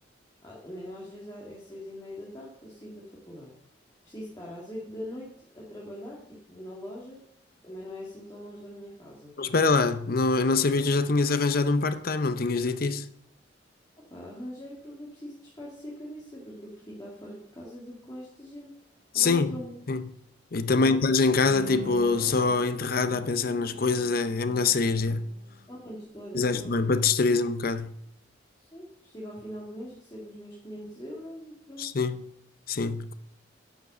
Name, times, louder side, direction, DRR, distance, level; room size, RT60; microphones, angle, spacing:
voice 1, 0.4-3.5 4.0-7.2 7.6-9.3 14.0-18.7 19.1-19.7 20.7-21.0 25.7-26.7 28.6-31.9, equal, 20° left, 2.0 m, -42 dB
voice 2, 9.4-13.1 19.1-19.5 19.9-20.0 20.5-25.2 26.3-27.9 31.8-32.2 32.7-33.1, left 4 dB, 50° left, 0.6 m, -24 dB
Bowed string instrument, 21.4-26.0 26.4-26.5, left 1 dB, 40° right, 0.9 m, -43 dB
11.0 x 5.2 x 6.7 m
head